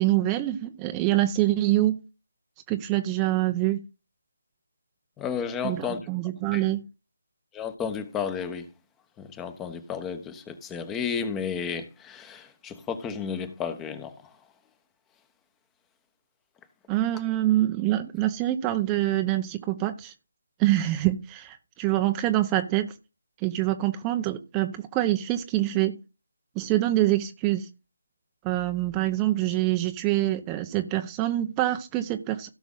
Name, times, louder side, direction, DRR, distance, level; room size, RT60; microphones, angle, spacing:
voice 1, 0.0-2.0 2.7-3.8 5.6-6.8 16.9-20.1 20.6-22.9 23.4-26.0 26.6-27.7 28.4-32.5, right 15 dB, 15° right, 0.8 m, -25 dB
voice 2, 5.2-6.0 6.5-6.6 7.5-8.7 9.2-14.1, left 6 dB, 10° left, 1.0 m, -32 dB
16.5 x 6.0 x 3.8 m
figure-of-eight pair, 155°, 0 cm